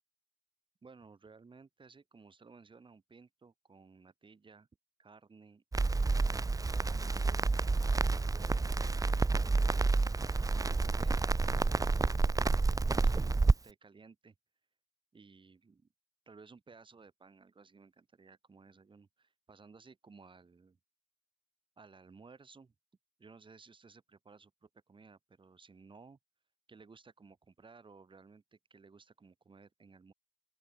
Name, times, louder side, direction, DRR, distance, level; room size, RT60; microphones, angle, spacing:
voice 1, 0.8-4.7 5.0-5.6 5.9-7.5 8.1-8.7 9.1-9.9 10.5-12.2 12.9-14.3 15.1-15.9 16.3-20.8 21.8-22.7 23.2-26.2 26.7-30.1, right 4 dB, 70° right, 7.6 m, -58 dB
Crackle, 5.7-13.5, right 3 dB, 40° right, 1.0 m, -29 dB
open air
wide cardioid pair, 75°, 9 cm